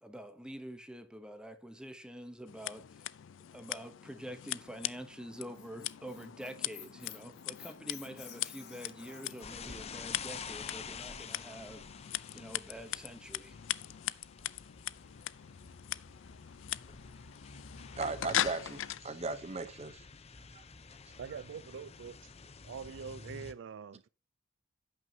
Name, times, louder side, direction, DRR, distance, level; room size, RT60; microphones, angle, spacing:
voice 1, 0.0-3.1 3.5-11.8 12.3-13.6, equal, 5° right, 0.8 m, -46 dB
Scissors, 2.5-19.0, left 13 dB, 90° left, 0.4 m, -41 dB
Squeak, 5.3-9.5, left 8 dB, 60° left, 2.2 m, -52 dB
sound 1, 9.4-23.5, left 5 dB, 35° left, 0.6 m, -49 dB
voice 2, 18.0-20.0 20.5-20.6, right 4 dB, 35° right, 0.8 m, -37 dB
voice 3, 21.2-22.3 22.6-24.1, right 6 dB, 75° right, 0.4 m, -44 dB
16.5 x 6.1 x 2.7 m
head